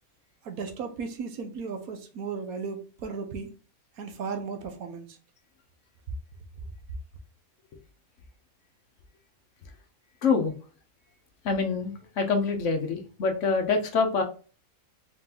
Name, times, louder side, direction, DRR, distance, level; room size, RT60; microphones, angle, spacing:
voice 1, 0.4-3.5 4.0-5.2, right 5 dB, 75° right, 1.3 m, -35 dB
voice 2, 10.2-10.5 11.4-14.2, left 4 dB, 60° left, 1.0 m, -25 dB
4.1 x 3.8 x 2.8 m
omnidirectional pair, 1.5 m